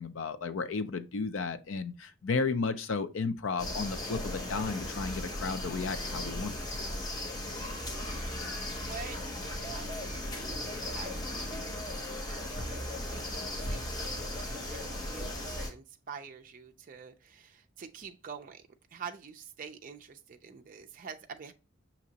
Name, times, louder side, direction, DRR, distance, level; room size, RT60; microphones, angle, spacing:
voice 1, 0.0-6.5 6.8-6.9, left 4 dB, 70° left, 0.5 m, -33 dB
sound 1, 3.6-15.7, left 1 dB, 20° left, 0.8 m, -37 dB
voice 2, 7.8-13.9 14.5-21.5, right 6 dB, 40° right, 0.4 m, -47 dB
6.1 x 2.9 x 2.8 m
head